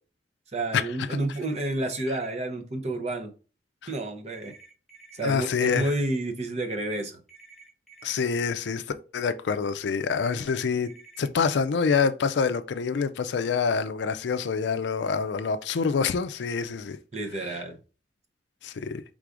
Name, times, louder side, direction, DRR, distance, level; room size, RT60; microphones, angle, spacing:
voice 1, 0.5-3.3 3.9-4.5 5.1-7.2 17.1-17.8, right 2 dB, 40° right, 0.7 m, -30 dB
sound 1, 1.3-2.3 4.3-5.3 7.3-8.3 10.3-11.3, right 4 dB, ahead, 1.1 m, -51 dB
voice 2, 5.2-5.9 8.0-8.8 9.1-17.0 17.4-17.6 18.6-19.0, left 5 dB, 70° left, 0.4 m, -26 dB
4.7 x 3.7 x 2.5 m
head